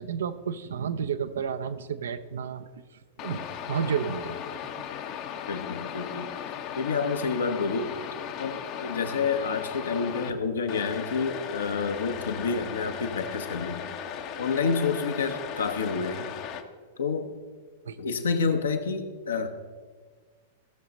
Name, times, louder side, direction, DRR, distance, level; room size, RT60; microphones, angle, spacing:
voice 1, 0.0-2.7 3.2-4.4 17.8-18.0, right 7 dB, 65° right, 12 dB, 0.6 m, -31 dB
sound 1, 3.2-10.3 10.7-16.6, left 8 dB, 40° left, 0.8 m, -37 dB
voice 2, 5.5-6.3 6.8-7.9 8.4-13.8 14.4-16.3 17.0-17.3 18.0-19.5, left 5 dB, 65° left, 7 dB, 1.0 m, -29 dB
16.0 x 6.7 x 4.1 m, 1.5 s
figure-of-eight pair, 95°, 0 cm